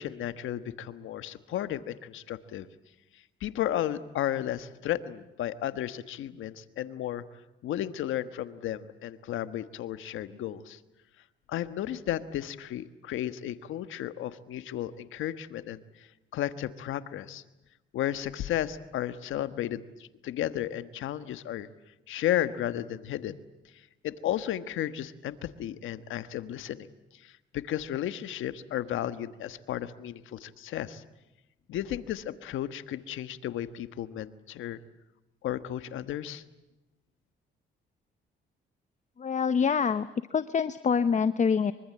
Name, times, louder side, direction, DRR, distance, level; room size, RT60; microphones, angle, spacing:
voice 1, 0.0-2.7 3.4-7.2 7.6-10.8 11.5-15.8 16.3-17.4 17.9-21.7 22.1-23.4 24.0-26.9 27.2-31.0 31.7-34.8 35.4-36.4, left 12 dB, 80° left, 12 dB, 1.3 m, -33 dB
voice 2, 39.2-41.7, left 6 dB, 35° left, 13 dB, 0.8 m, -26 dB
24.5 x 24.0 x 8.7 m, 0.99 s
cardioid pair, 90°, 20 cm